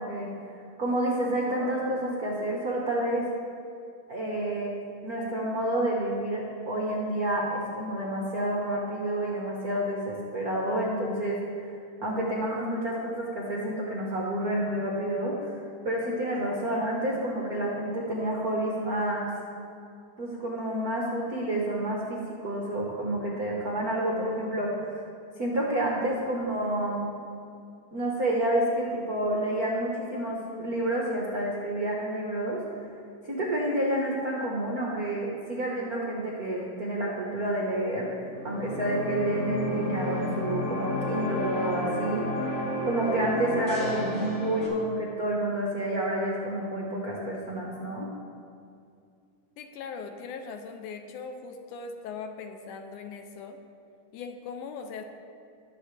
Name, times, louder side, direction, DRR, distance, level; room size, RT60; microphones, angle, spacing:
voice 1, 0.0-3.3 4.1-4.7 5.0-11.7 12.0-15.5 15.8-19.3 20.2-25.0 25.4-27.0 27.9-32.6 33.2-42.3 42.8-48.1, right 1 dB, 75° right, -3 dB, 0.8 m, -29 dB
sound 1, 38.2-44.7, left 1 dB, 55° left, 3.0 m, -31 dB
voice 2, 49.6-53.6 54.1-55.0, left 5 dB, 75° left, 6 dB, 2.1 m, -40 dB
20.5 x 7.6 x 3.3 m, 2.4 s
omnidirectional pair, 3.8 m